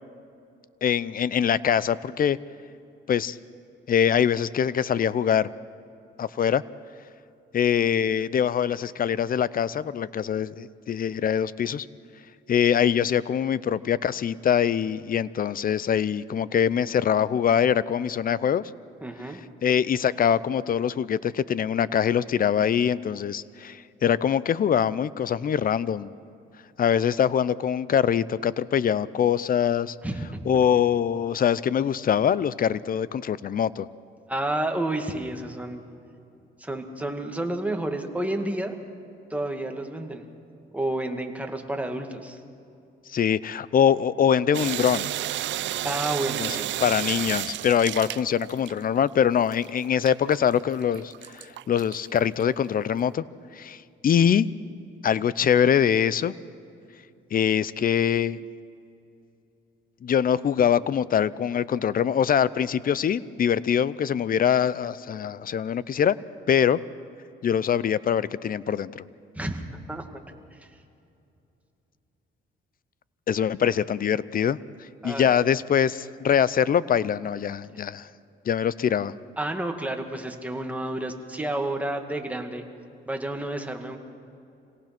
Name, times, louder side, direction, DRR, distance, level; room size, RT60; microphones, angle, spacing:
voice 1, 0.8-2.4 3.1-3.4 3.9-5.5 6.2-6.6 7.5-11.9 12.5-18.6 19.6-26.1 26.8-29.9 30.5-33.9 43.1-45.1 46.4-51.1 51.7-53.2 53.5-54.5 55.0-56.3 57.3-58.4 60.0-66.2 66.5-66.8 67.4-69.0 73.3-74.6 75.0-78.1 78.5-79.1, left 8 dB, 45° left, 18 dB, 0.6 m, -23 dB
voice 2, 19.0-19.4 30.0-30.6 34.3-35.8 36.6-38.8 39.3-40.3 40.7-42.4 45.8-46.8 69.4-69.6 69.9-70.0 70.5-70.7 75.0-75.3 79.4-82.6 83.1-84.0, right 1 dB, 5° right, 3 dB, 2.1 m, -30 dB
sound 1, 44.5-49.0 49.5-52.5, right 14 dB, 70° right, 0.5 m, -31 dB
26.5 x 18.0 x 6.1 m, 2.7 s
cardioid pair, 90°, 20 cm